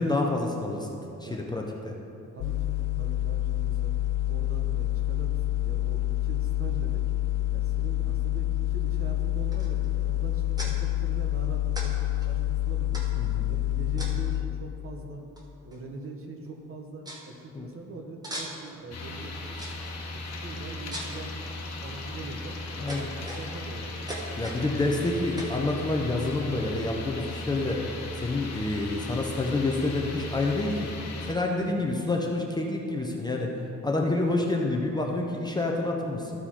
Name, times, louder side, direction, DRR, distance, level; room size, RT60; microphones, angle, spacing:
voice 1, 0.0-2.0 13.2-13.5 17.5-17.7 22.8-23.1 24.4-27.8 28.2-30.9 31.2-33.5 33.8-36.3, left 2 dB, 15° left, 0 dB, 0.6 m, -28 dB
voice 2, 2.3-3.9 4.3-7.1 7.5-13.0 13.5-15.2 15.6-19.6 20.1-24.3 31.5-31.9 34.0-34.3, right 2 dB, 45° right, 3 dB, 1.0 m, -43 dB
sound 1, 2.4-14.4, left 15 dB, 75° left, 0.5 m, -27 dB
sound 2, 9.5-9.9 10.6-10.7 11.7-11.9 12.1-12.3 12.9-13.3 14.0-14.4 15.4-15.5 15.7-16.1 16.5-16.6 17.1-17.2 18.2-18.8 19.6-19.9 20.9-21.2 21.9-22.3 22.9-23.7 24.1-24.6 25.4-25.6, right 1 dB, 10° right, 1.2 m, -39 dB
sound 3, 18.9-31.4, left 2 dB, 60° left, 1.2 m, -37 dB
14.0 x 4.7 x 4.3 m, 2.7 s
cardioid pair, 155°, 31 cm